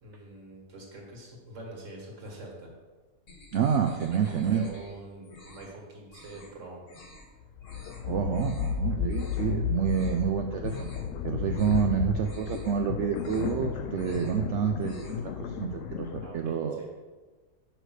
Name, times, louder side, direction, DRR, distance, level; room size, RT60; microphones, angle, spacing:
voice 1, 0.0-2.7 4.1-6.8 16.2-16.9, right 2 dB, 50° right, -1 dB, 2.0 m, -45 dB
sound 1, 3.3-4.9 5.2-5.7 6.1-6.5 6.8-7.2 7.6-8.0 8.3-8.7 9.0-9.5 9.8-10.2 10.6-11.1 11.4-11.9 12.2-12.7 13.1-13.6 13.9-14.4 14.7-15.3, left 2 dB, 50° left, 1.6 m, -51 dB
voice 2, 3.5-4.7 8.0-11.0 11.2-16.8, right 7 dB, 85° right, 4 dB, 0.6 m, -28 dB
sound 2, 7.5-16.3, left 8 dB, 70° left, 0.8 m, -33 dB
6.1 x 4.9 x 6.4 m, 1.3 s
omnidirectional pair, 1.8 m